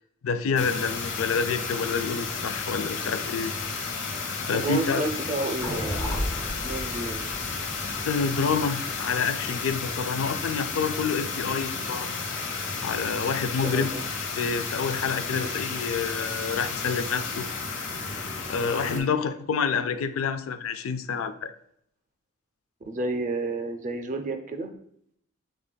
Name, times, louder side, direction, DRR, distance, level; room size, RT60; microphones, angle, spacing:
voice 1, 0.2-3.5 4.5-5.0 7.8-12.1 12.8-13.9 14.4-17.5 18.5-21.5, left 5 dB, 90° left, 11 dB, 0.4 m, -28 dB
sound 1, 0.6-19.0, left 4 dB, 70° left, 0.9 m, -32 dB
voice 2, 4.5-7.3 13.6-14.0 15.3-15.5 18.8-19.1 22.8-24.7, right 2 dB, 35° right, 6 dB, 0.4 m, -31 dB
sound 2, 5.6-9.9, equal, 25° left, 0.5 m, -34 dB
6.6 x 3.1 x 2.2 m, 0.70 s
head